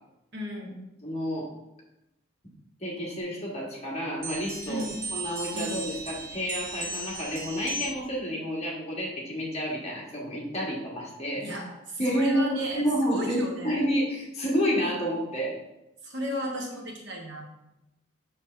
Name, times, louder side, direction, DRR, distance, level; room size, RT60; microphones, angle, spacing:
voice 1, 0.3-0.8 4.7-5.0 5.5-5.8 11.4-12.8 13.1-13.8 16.0-17.4, equal, 55° right, 0 dB, 1.3 m, -33 dB
voice 2, 1.0-1.5 2.8-11.6 12.0-12.4 12.7-13.4 13.6-15.6, equal, 30° left, -3 dB, 1.4 m, -29 dB
sound 1, 4.2-8.1, right 2 dB, 75° right, 1.4 m, -36 dB
6.3 x 6.3 x 3.3 m, 0.93 s
head